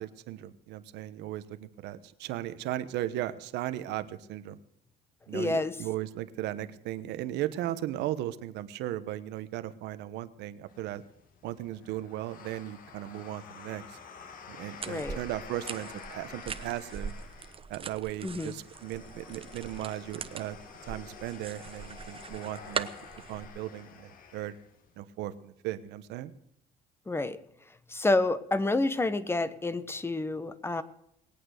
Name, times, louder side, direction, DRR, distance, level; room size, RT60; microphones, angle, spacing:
voice 1, 0.0-4.6 5.3-11.0 11.4-14.0 14.5-17.1 17.7-20.6 20.8-22.9 23.3-24.5 25.0-26.3, right 13 dB, 85° right, 12 dB, 1.2 m, -36 dB
voice 2, 5.3-5.8 14.9-15.2 18.2-18.5 27.1-27.4 27.9-30.8, left 2 dB, 15° left, 14 dB, 1.1 m, -29 dB
sound 1, 10.7-24.9, left 6 dB, 55° left, 2.2 m, -49 dB
sound 2, 14.8-23.4, right 6 dB, 35° right, 1.1 m, -41 dB
20.5 x 8.8 x 6.6 m, 0.76 s
cardioid pair, 110°, 17 cm